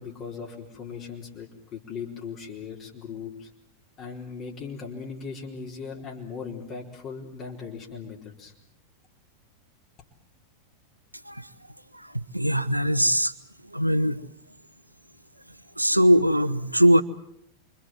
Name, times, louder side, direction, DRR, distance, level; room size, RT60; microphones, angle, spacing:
voice 1, 0.0-3.5 4.0-8.5, left 5 dB, 35° left, -2 dB, 4.3 m, -38 dB
voice 2, 12.3-13.3 13.7-14.2 15.8-17.0, equal, 85° right, 12 dB, 1.0 m, -20 dB
28.0 x 24.5 x 7.6 m, 0.74 s
figure-of-eight pair, 90°, 0 cm